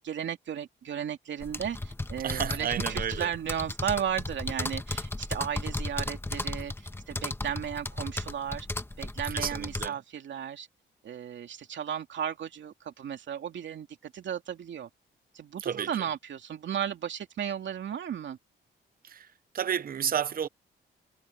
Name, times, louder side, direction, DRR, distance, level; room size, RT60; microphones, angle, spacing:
voice 1, 0.0-10.7 11.0-14.9 15.3-18.4, right 9 dB, 70° right, 2.6 m, -35 dB
sound 1, 1.4-9.9, left 2 dB, 10° left, 1.3 m, -35 dB
voice 2, 2.2-3.3 9.3-9.9 15.6-15.9 19.0-19.3 19.5-20.5, right 8 dB, 45° right, 0.8 m, -31 dB
cardioid pair, 80°, 20 cm